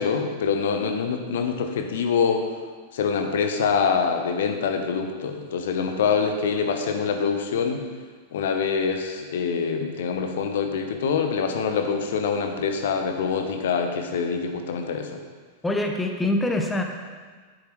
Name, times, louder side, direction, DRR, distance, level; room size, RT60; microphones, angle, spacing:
voice 1, 0.0-2.5 2.9-7.8 8.3-15.2, left 5 dB, 60° left, 5 dB, 0.9 m, -25 dB
voice 2, 15.6-16.8, left 1 dB, 10° left, 3 dB, 0.8 m, -24 dB
10.5 x 7.9 x 3.2 m, 1.5 s
figure-of-eight pair, 90°, 0 cm